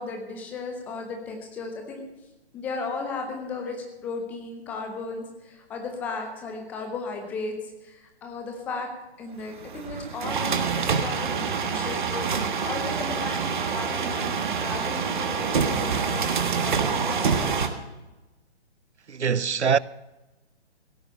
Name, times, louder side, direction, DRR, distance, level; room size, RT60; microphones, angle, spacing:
voice 1, 0.0-2.0 2.5-8.9 9.2-17.4, left 4 dB, 5° left, 0.6 m, -35 dB
sound 1, 9.5-17.7, right 6 dB, 45° right, 1.4 m, -26 dB
voice 2, 19.1-19.8, right 6 dB, 85° right, 0.6 m, -23 dB
16.0 x 8.9 x 6.6 m
figure-of-eight pair, 135°, 33 cm